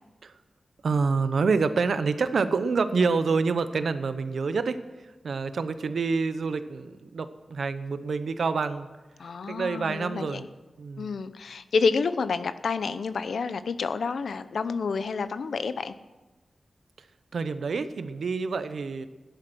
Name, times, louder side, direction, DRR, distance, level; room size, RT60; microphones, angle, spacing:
voice 1, 0.8-8.9 9.5-10.4 10.8-11.1 17.0-17.1 17.3-19.1, right 4 dB, 80° right, 11 dB, 0.8 m, -27 dB
voice 2, 9.2-10.5 11.0-15.9, left 5 dB, 85° left, 13 dB, 0.7 m, -29 dB
16.0 x 10.5 x 6.2 m, 1.2 s
wide cardioid pair, 130°, 0 cm